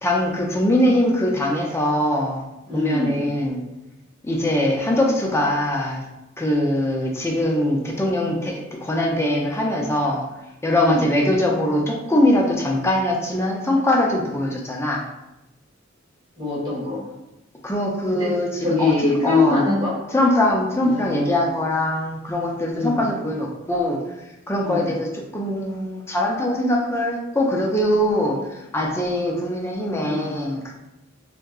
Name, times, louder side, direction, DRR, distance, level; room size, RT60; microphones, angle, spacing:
voice 1, 0.0-2.4 2.7-3.6 4.2-6.0 6.4-10.2 10.6-15.0 17.6-18.5 18.8-18.9 19.2-19.6 20.1-24.0 24.5-28.4 28.7-30.7, left 1 dB, 15° left, -1 dB, 0.4 m, -22 dB
voice 2, 2.7-3.2 10.7-11.1 16.4-17.0 18.1-18.3 18.6-19.9 20.8-21.4 22.7-23.0 24.6-24.9 30.0-30.3, left 3 dB, 25° right, -10 dB, 1.3 m, -23 dB
3.6 x 2.7 x 2.3 m, 0.96 s
head